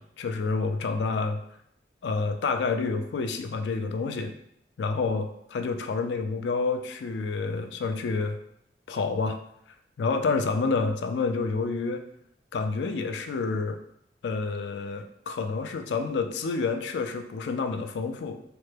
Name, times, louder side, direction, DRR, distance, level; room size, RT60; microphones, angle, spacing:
voice 1, 0.0-1.4 2.0-4.3 4.8-8.4 8.9-9.4 10.0-12.0 12.5-13.8 14.2-18.4, left 4 dB, 75° left, 6 dB, 0.3 m, -28 dB
3.2 x 2.1 x 3.2 m, 0.73 s
head